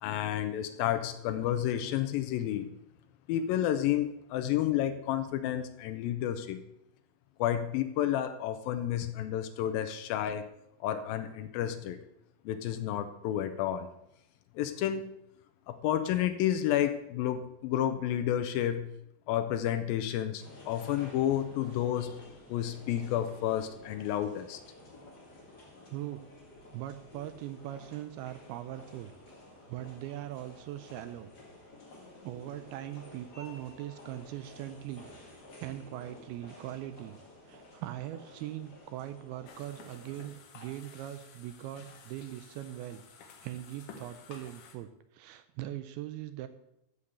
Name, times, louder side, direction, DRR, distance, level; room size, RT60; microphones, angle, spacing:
voice 1, 0.0-2.7 3.3-6.6 7.4-10.4 10.8-12.0 12.5-13.9 14.6-15.1 15.7-18.9 19.3-22.2 22.5-24.6, left 11 dB, 80° left, 9 dB, 2.1 m, -31 dB
sound 1, 20.4-40.3, left 1 dB, 35° left, 1.8 m, -52 dB
voice 2, 26.7-29.1 29.7-31.3 32.2-35.1 35.6-37.2 37.5-43.0 43.4-46.5, right 13 dB, 80° right, 10 dB, 2.4 m, -41 dB
sound 2, 39.5-44.7, left 6 dB, 65° left, 2.5 m, -53 dB
13.5 x 5.4 x 6.6 m, 0.83 s
omnidirectional pair, 4.7 m